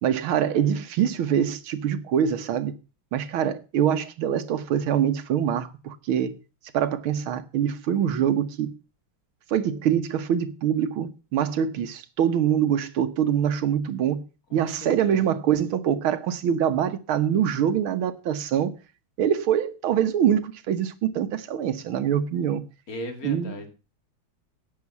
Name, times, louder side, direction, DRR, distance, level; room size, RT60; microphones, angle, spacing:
voice 1, 0.0-2.7 3.1-6.4 6.7-8.7 9.5-14.2 14.5-18.7 19.2-22.6 23.2-23.5, right 9 dB, 85° right, 2.0 m, -24 dB
voice 2, 14.5-15.2 22.9-23.7, left 1 dB, 45° left, 2.8 m, -37 dB
11.5 x 7.9 x 7.1 m
omnidirectional pair, 2.2 m